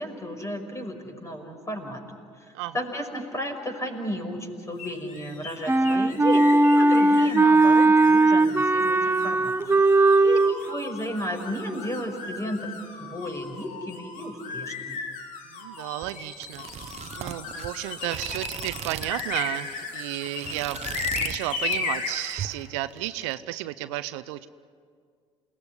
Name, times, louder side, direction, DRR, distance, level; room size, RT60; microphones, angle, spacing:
voice 1, 0.0-12.7 13.0-15.0, equal, 20° left, 4 dB, 5.8 m, -34 dB
sound 1, 4.8-22.5, left 5 dB, 60° left, 3.0 m, -36 dB
Wind instrument woodwind instrument, 5.7-10.6, right 2 dB, 15° right, 0.8 m, -18 dB
voice 2, 15.5-16.7 17.2-20.9 21.2-24.5, right 15 dB, 75° right, 13 dB, 0.7 m, -32 dB
sound 2, 16.0-19.4 19.7-19.9 20.2-21.4 21.7-22.1 22.4-23.3, right 8 dB, 45° right, 1.1 m, -37 dB
28.5 x 18.5 x 9.9 m, 2.1 s
hypercardioid pair, 55°, 15 cm